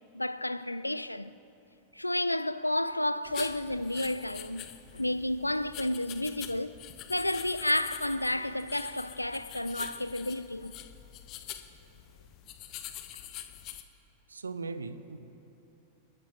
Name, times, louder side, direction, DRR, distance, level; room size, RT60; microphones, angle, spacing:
voice 1, 0.1-1.3 1.9-4.7 4.9-6.7 7.1-10.7, left 1 dB, 85° left, 0.4 m, -31 dB
sound 1, 3.2-13.8, left 11 dB, 35° left, 0.9 m, -45 dB
voice 2, 14.3-15.2, right 4 dB, 75° right, 0.7 m, -38 dB
28.5 x 13.0 x 3.0 m
figure-of-eight pair, 90°, 0 cm